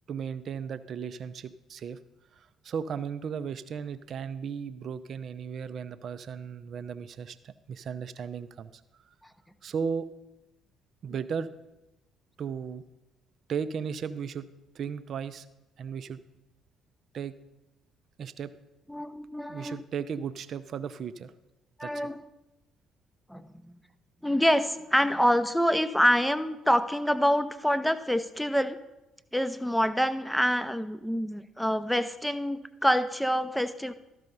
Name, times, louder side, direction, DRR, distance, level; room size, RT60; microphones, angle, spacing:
voice 1, 0.1-2.0 2.3-8.7 9.6-10.1 11.0-11.5 12.4-12.8 13.5-14.5 14.7-15.5 15.8-16.2 17.1-17.4 18.2-18.5 19.5-21.3 21.8-22.1, right 7 dB, 50° right, 13 dB, 0.5 m, -35 dB
voice 2, 18.9-19.8 21.8-22.2 23.3-23.7 24.2-28.8 29.3-33.9, equal, 5° left, 11 dB, 0.6 m, -26 dB
12.5 x 5.5 x 5.3 m, 0.97 s
figure-of-eight pair, 45°, 0 cm